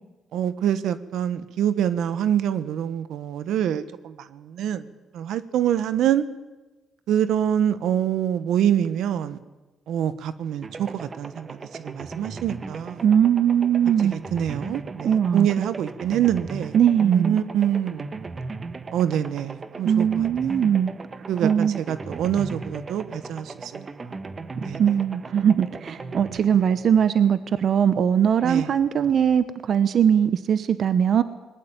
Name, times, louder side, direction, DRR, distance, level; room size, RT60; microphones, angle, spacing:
voice 1, 0.3-4.8 5.1-6.2 7.1-9.4 9.9-11.6 11.8-13.0 14.3-16.7 17.0-18.2 18.9-20.3 21.3-23.9 24.6-24.8 26.1-26.4 28.4-28.7, right 10 dB, 80° right, 13 dB, 1.3 m, -25 dB
sound 1, 10.6-27.5, right 3 dB, 30° right, 1.4 m, -37 dB
voice 2, 13.0-14.1 15.0-15.7 16.7-17.4 19.8-20.9 21.4-21.8 24.8-31.2, right 8 dB, 60° right, 13 dB, 1.0 m, -20 dB
21.0 x 20.0 x 8.9 m, 1.1 s
cardioid pair, 90°, 0 cm